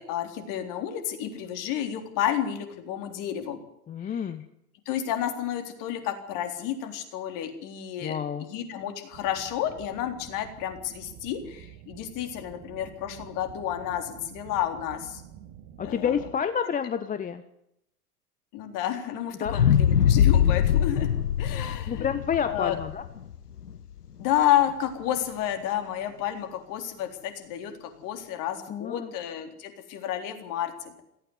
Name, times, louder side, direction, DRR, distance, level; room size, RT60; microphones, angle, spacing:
voice 1, 0.0-3.6 4.0-4.2 4.9-15.2 15.8-16.2 18.5-21.1 21.4-22.1 22.4-22.7 24.2-31.0, left 11 dB, 40° left, 7 dB, 3.9 m, -30 dB
voice 2, 3.9-4.5 8.0-8.5 15.8-17.4 19.4-19.8 21.9-23.0 28.7-29.1, left 7 dB, 15° left, 12 dB, 0.9 m, -29 dB
sound 1, 9.1-16.3, right 11 dB, 40° right, 2.1 m, -48 dB
sound 2, 19.4-23.7 24.2-24.3, left 9 dB, 80° left, 0.9 m, -22 dB
17.5 x 16.0 x 9.7 m, 0.80 s
figure-of-eight pair, 90°, 46 cm